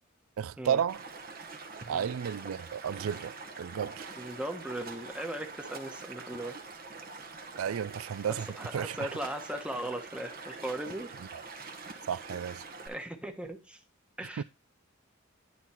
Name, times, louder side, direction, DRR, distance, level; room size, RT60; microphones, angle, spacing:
voice 1, 0.4-1.0 1.9-4.1 7.6-8.5 8.7-9.1 11.3-11.4 12.1-12.7 14.4-14.5, right 8 dB, 85° right, 0.4 m, -33 dB
Stream, 0.9-12.9, right 4 dB, 45° right, 1.1 m, -45 dB
voice 2, 4.2-6.6 8.6-11.1 12.9-13.8 14.2-14.4, right 1 dB, 5° right, 1.1 m, -38 dB
10.5 x 3.9 x 4.4 m
head